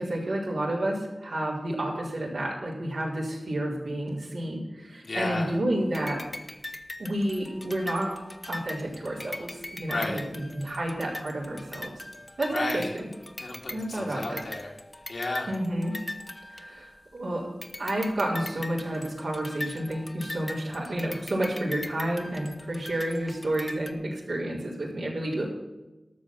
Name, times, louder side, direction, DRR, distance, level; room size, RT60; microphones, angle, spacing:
voice 1, 0.0-6.2 7.0-11.9 12.4-12.8 13.7-14.4 15.5-16.0 16.5-17.5 17.8-25.5, right 1 dB, 85° right, -5 dB, 4.4 m, -30 dB
voice 2, 5.0-5.5 9.9-10.2 12.5-12.9 13.4-14.7 15.1-15.5, left 2 dB, 80° left, -1 dB, 2.9 m, -32 dB
sound 1, 5.9-17.2 17.6-23.9, left 1 dB, 30° left, 1.1 m, -41 dB
13.0 x 6.6 x 7.4 m, 1.1 s
cardioid pair, 40°, 0 cm